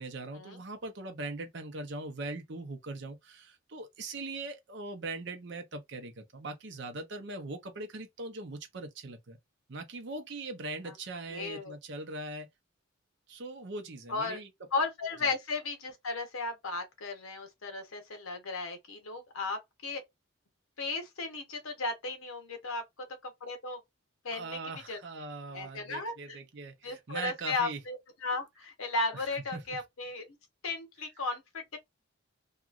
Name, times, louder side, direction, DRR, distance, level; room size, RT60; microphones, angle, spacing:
voice 1, 0.0-9.4 9.7-12.5 13.3-14.5 24.3-27.8 29.1-29.6, right 2 dB, 55° right, 0.7 m, -41 dB
voice 2, 11.3-11.7 14.1-14.4 14.7-20.0 20.8-22.8 23.2-23.8 24.2-24.6 24.9-25.0 25.5-26.4 26.8-30.3 30.6-31.8, left 3 dB, 90° left, 0.9 m, -35 dB
2.9 x 2.3 x 2.4 m
head